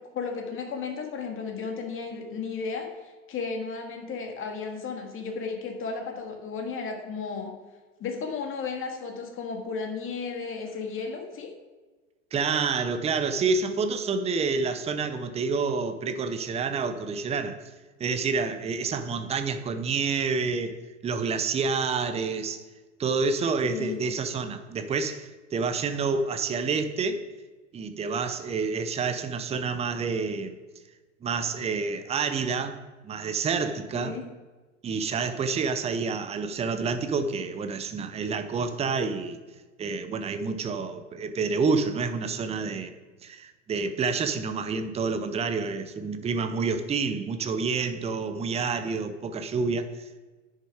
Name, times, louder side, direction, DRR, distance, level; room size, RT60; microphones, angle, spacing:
voice 1, 0.0-2.9 3.3-7.5 8.0-11.5 23.6-24.0 33.9-34.2, left 5 dB, 35° left, 2.2 m, -34 dB
voice 2, 12.3-17.6 18.0-22.6 23.0-27.2 27.7-30.6 31.2-34.2 34.8-39.4 39.8-42.9 43.2-50.3, right 4 dB, 15° right, 0.7 m, -28 dB
10.0 x 6.5 x 4.9 m
figure-of-eight pair, 85°, 37 cm